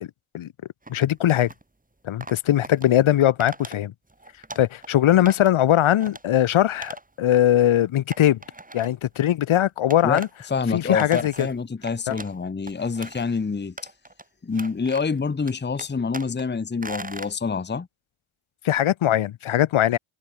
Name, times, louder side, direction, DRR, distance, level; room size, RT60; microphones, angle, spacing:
sound 1, 0.8-1.6 2.2-2.8 3.4-3.8 4.1-4.9 5.2-5.6 5.9-6.2 6.8-7.0 7.3-7.4 8.1-9.2 9.9-10.3 10.7-12.4 12.7-13.4 13.8-14.2 14.5-15.2 15.5-16.4 16.8-17.3, right 2 dB, 15° right, 3.9 m, -39 dB
voice 1, 0.9-1.5 2.0-3.9 4.6-8.4 8.7-10.3 10.7-11.5 12.1-12.2 18.6-20.0, left 12 dB, 70° left, 1.6 m, -20 dB
voice 2, 10.5-13.7 14.4-17.9, left 5 dB, 20° left, 1.1 m, -26 dB
cardioid pair, 60°, 49 cm